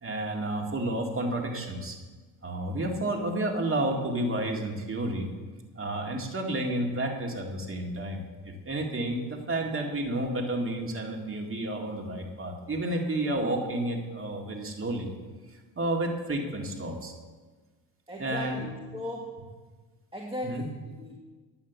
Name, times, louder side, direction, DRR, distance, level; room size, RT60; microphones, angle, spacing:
voice 1, 0.0-2.0 2.4-5.3 5.8-15.1 15.8-17.1 18.2-18.6 20.4-20.7, right 1 dB, 30° right, 2 dB, 2.0 m, -31 dB
voice 2, 18.1-19.4 20.1-21.2, equal, 15° right, -1 dB, 1.5 m, -38 dB
9.7 x 8.4 x 7.0 m, 1.4 s
cardioid pair, 90°, 41 cm